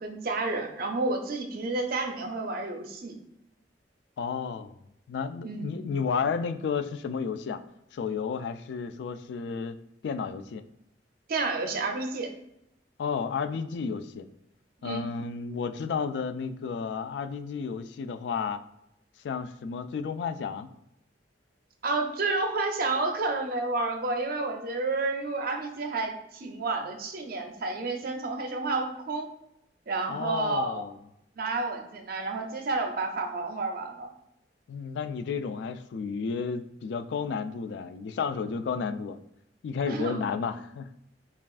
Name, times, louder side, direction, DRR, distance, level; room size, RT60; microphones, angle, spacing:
voice 1, 0.0-3.1 5.4-5.8 11.3-12.3 14.8-15.0 21.8-29.3 29.9-30.8 31.4-34.1 39.9-40.3, right 3 dB, 55° right, 4 dB, 0.6 m, -30 dB
voice 2, 4.2-4.7 5.1-7.6 7.9-9.8 10.0-10.6 13.0-14.3 14.8-18.6 19.2-20.7 30.1-30.9 34.7-39.2 39.6-40.9, left 5 dB, 75° left, 11 dB, 0.3 m, -32 dB
5.5 x 2.4 x 2.4 m, 0.82 s
head